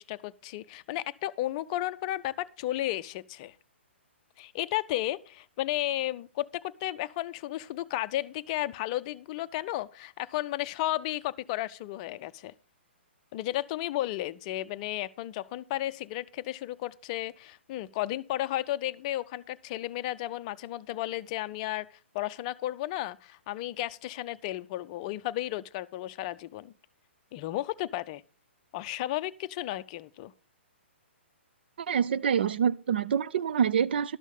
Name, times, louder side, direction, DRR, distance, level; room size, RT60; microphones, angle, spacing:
voice 1, 0.0-3.5 4.4-12.5 13.3-26.7 27.3-28.2 28.7-30.3, left 15 dB, 35° left, 0.5 m, -33 dB
voice 2, 31.8-34.2, right 8 dB, 55° right, 0.5 m, -26 dB
12.0 x 6.3 x 5.3 m
figure-of-eight pair, 125°, 7 cm